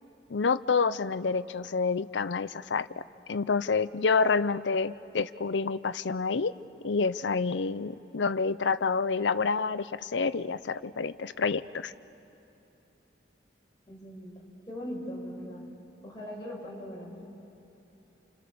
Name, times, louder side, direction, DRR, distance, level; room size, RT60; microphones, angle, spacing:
voice 1, 0.3-3.0 3.3-6.5 6.8-11.9, left 4 dB, 75° left, 14 dB, 0.6 m, -28 dB
voice 2, 13.9-15.7 16.0-17.2, equal, 20° left, -4 dB, 6.0 m, -40 dB
29.5 x 28.0 x 6.9 m, 3.0 s
head